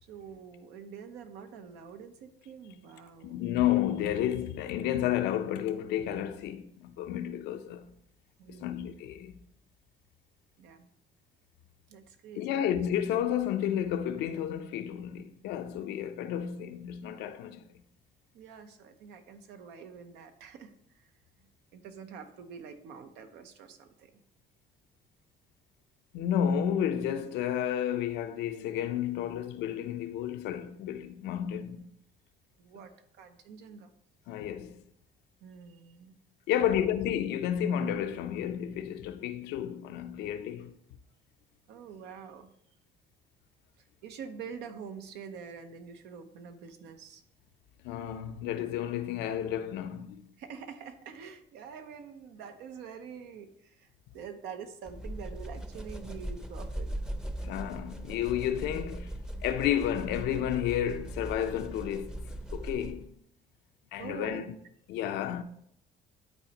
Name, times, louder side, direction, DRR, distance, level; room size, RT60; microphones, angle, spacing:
voice 1, 0.0-3.4 8.4-8.8 10.6-10.9 11.9-12.6 18.3-21.1 21.4-24.2 32.6-33.9 35.4-36.1 36.6-36.9 41.7-42.5 43.8-47.2 50.4-56.9 64.0-64.5, right 6 dB, 90° right, 0.8 m, -46 dB
voice 2, 3.2-8.0 8.5-9.4 12.4-17.6 26.1-31.8 34.3-34.8 36.5-40.7 47.8-50.2 57.4-59.1 59.4-63.1 63.9-64.5 64.9-65.4, left 10 dB, 85° left, 0.6 m, -31 dB
sound 1, 54.9-63.1, right 1 dB, 5° right, 0.6 m, -39 dB
11.5 x 4.2 x 2.9 m
cardioid pair, 110°, 17 cm